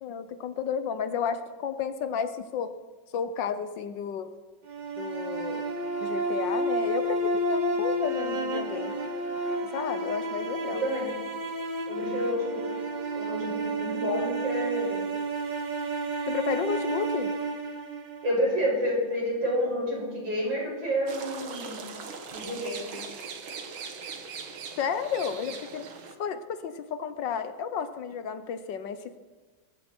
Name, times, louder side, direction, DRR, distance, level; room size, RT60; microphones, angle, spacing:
voice 1, 0.0-2.7 3.1-4.3 5.0-5.7 6.0-8.9 9.7-10.8 16.3-17.3 24.8-25.9 26.2-29.2, left 7 dB, 70° left, 11 dB, 1.5 m, -32 dB
sound 1, 4.7-18.8, right 2 dB, 30° right, 1.1 m, -31 dB
voice 2, 10.7-11.1 11.9-12.7 13.1-15.0 18.2-21.9 22.3-22.9, equal, 70° right, -3 dB, 6.7 m, -29 dB
sound 2, 21.1-26.2, right 5 dB, 85° right, 2.2 m, -40 dB
23.5 x 12.5 x 4.4 m, 1.3 s
omnidirectional pair, 2.1 m